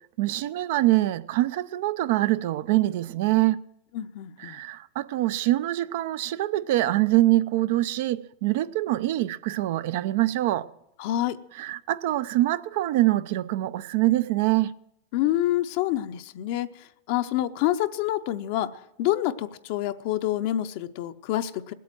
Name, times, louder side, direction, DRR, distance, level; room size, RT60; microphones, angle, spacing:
voice 1, 0.2-3.6 4.4-10.7 11.6-14.7, right 16 dB, 65° right, 0.5 m, -24 dB
voice 2, 3.9-4.6 11.0-11.4 15.1-21.7, left 13 dB, 60° left, 0.6 m, -27 dB
18.0 x 8.4 x 7.8 m
supercardioid pair, 130°, 0 cm